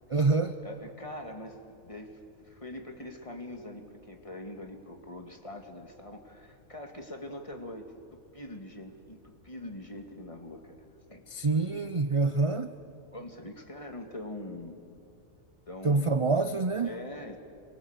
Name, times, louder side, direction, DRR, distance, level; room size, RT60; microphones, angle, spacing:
voice 1, 0.1-0.6 11.3-12.7 15.8-16.9, right 3 dB, 35° right, 10 dB, 0.6 m, -26 dB
voice 2, 0.6-11.3 13.1-14.8 15.7-16.4 16.8-17.4, left 1 dB, 25° left, 4 dB, 2.2 m, -43 dB
27.5 x 22.5 x 8.2 m, 2.4 s
omnidirectional pair, 1.4 m